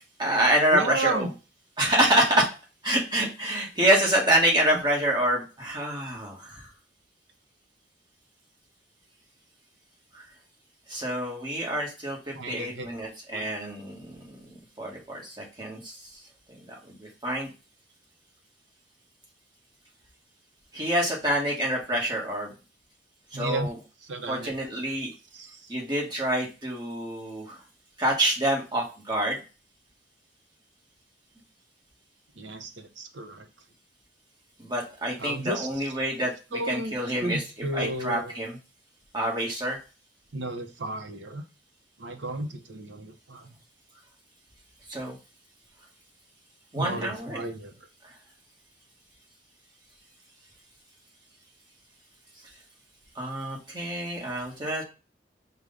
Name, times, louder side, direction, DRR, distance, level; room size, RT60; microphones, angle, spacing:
voice 1, 0.2-1.3 1.8-2.5 2.8-6.7 10.1-10.2 10.9-14.5 14.8-16.0 16.5-17.5 20.7-22.5 23.3-23.8 24.3-25.1 25.7-27.6 28.0-29.4 34.6-37.4 37.7-38.6 39.1-39.8 44.9-45.1 46.7-47.4 53.1-54.8, right 1 dB, 25° right, -2 dB, 1.5 m, -27 dB
voice 2, 0.7-1.3 12.3-12.8 13.3-13.5 23.3-23.7 24.1-24.5 25.3-25.6 32.4-33.4 35.2-35.7 36.5-36.9 37.2-38.3 40.3-41.4 42.0-43.5 46.7-47.7, right 2 dB, 80° right, 6 dB, 0.8 m, -33 dB
4.8 x 2.3 x 3.8 m, 0.31 s
head